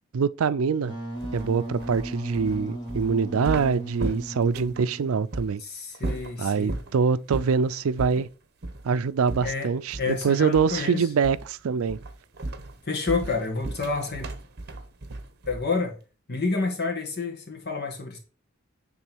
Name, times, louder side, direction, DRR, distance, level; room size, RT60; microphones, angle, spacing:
voice 1, 0.1-0.9 1.3-5.6 6.4-8.3 8.8-12.0, right 5 dB, 85° right, 0.4 m, -24 dB
Wind instrument woodwind instrument, 0.8-5.3, right 1 dB, 20° left, 2.8 m, -37 dB
sound 1, 1.2-4.8 5.3-5.5 5.9-6.9 7.3-7.6 8.0-8.2 8.6-8.8 9.3-10.2 10.5-10.9 11.2-11.5 11.9-15.8, right 2 dB, 50° right, 1.0 m, -35 dB
voice 2, 5.6-6.8 8.1-8.2 9.4-11.1 12.8-14.3 15.5-16.0 16.3-18.2, left 4 dB, 50° left, 1.9 m, -29 dB
9.2 x 3.7 x 6.1 m
head